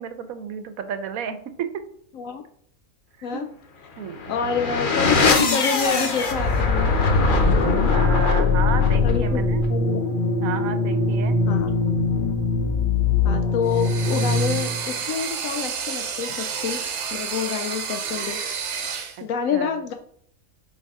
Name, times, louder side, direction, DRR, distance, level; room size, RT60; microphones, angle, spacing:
voice 1, 0.0-1.7 3.3-3.5 4.0-4.4 7.9-9.7 10.4-11.4 19.2-19.8, right 8 dB, 75° right, 10 dB, 1.1 m, -32 dB
sound 1, 4.1-14.8, left 3 dB, 40° left, 0.9 m, -21 dB
voice 2, 4.3-6.9 9.0-9.4 9.7-10.2 11.5-11.7 13.2-16.8 17.1-18.4 18.7-19.9, left 6 dB, 70° left, 7 dB, 0.9 m, -27 dB
sound 2, 13.7-19.2, right 6 dB, 60° right, 1.0 m, -30 dB
8.2 x 4.1 x 3.6 m, 0.64 s
omnidirectional pair, 1.5 m